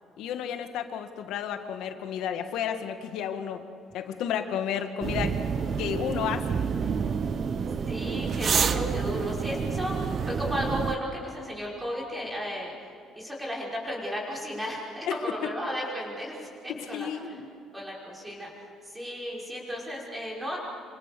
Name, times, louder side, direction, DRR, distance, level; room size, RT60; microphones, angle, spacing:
voice 1, 0.2-3.6 3.9-5.4 5.8-6.5 15.1-15.2 16.7-17.5, left 9 dB, 70° left, 7 dB, 1.8 m, -32 dB
sound 1, 5.0-11.0, right 6 dB, 35° right, 0.9 m, -28 dB
voice 2, 7.9-12.7 13.2-17.4 17.7-18.5 18.8-20.6, equal, 10° right, -3 dB, 5.5 m, -34 dB
28.0 x 26.0 x 6.9 m, 2.6 s
cardioid pair, 170°, 0 cm